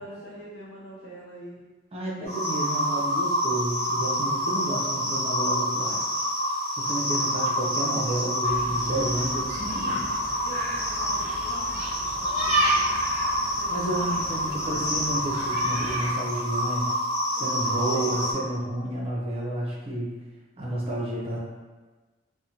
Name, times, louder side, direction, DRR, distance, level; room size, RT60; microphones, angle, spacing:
voice 1, 0.0-1.6 10.4-12.9 13.5-14.9 17.4-18.3 19.6-20.0, right 1 dB, 90° left, -5 dB, 0.7 m, -45 dB
voice 2, 1.9-6.0 6.8-10.1 13.7-16.9 17.3-20.1 20.6-21.4, right 1 dB, 35° right, -4 dB, 0.5 m, -31 dB
sound 1, 2.3-18.3, equal, 15° left, 0.9 m, -27 dB
sound 2, 8.4-16.1, right 1 dB, 15° right, 1.0 m, -32 dB
2.5 x 2.0 x 2.8 m, 1.3 s
head